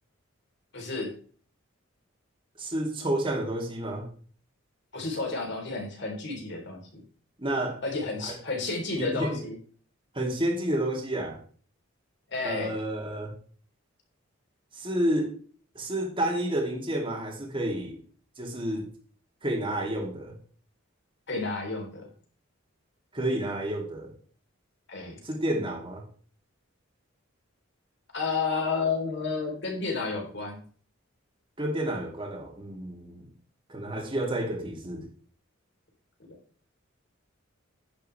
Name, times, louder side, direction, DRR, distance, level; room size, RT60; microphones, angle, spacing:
voice 1, 0.7-1.1 4.9-7.0 7.8-9.6 12.3-12.8 21.3-22.1 24.9-25.2 28.1-30.6, left 4 dB, 55° left, 1 dB, 3.9 m, -31 dB
voice 2, 2.6-4.0 7.4-7.8 8.2-8.3 9.0-9.4 10.1-11.4 12.4-13.3 14.7-15.3 15.7-17.9 18.4-18.9 19.4-20.3 23.1-24.1 25.2-26.0 31.6-33.2 33.7-35.0, right 1 dB, 25° right, 0 dB, 2.9 m, -30 dB
10.5 x 10.5 x 3.4 m, 0.43 s
head